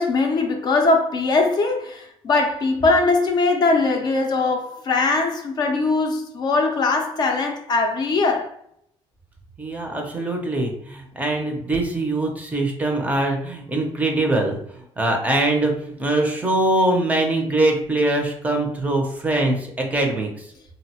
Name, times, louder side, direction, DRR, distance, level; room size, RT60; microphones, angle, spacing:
voice 1, 0.0-8.5, left 3 dB, 40° left, 0.4 m, -21 dB
voice 2, 9.6-14.6 15.0-20.5, right 2 dB, 15° right, 0.5 m, -22 dB
3.7 x 2.0 x 2.8 m
cardioid pair, 170°, 11 cm